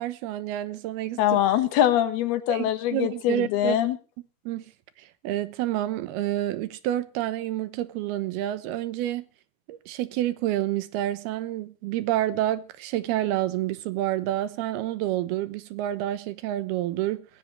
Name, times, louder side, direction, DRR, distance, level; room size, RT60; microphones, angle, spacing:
voice 1, 0.0-1.4 2.5-3.8 4.5-4.6 5.0-9.3 9.7-17.3, right 13 dB, 85° right, 2.9 m, -29 dB
voice 2, 1.2-4.0, left 11 dB, 85° left, 3.3 m, -23 dB
19.5 x 16.5 x 3.2 m
omnidirectional pair, 4.4 m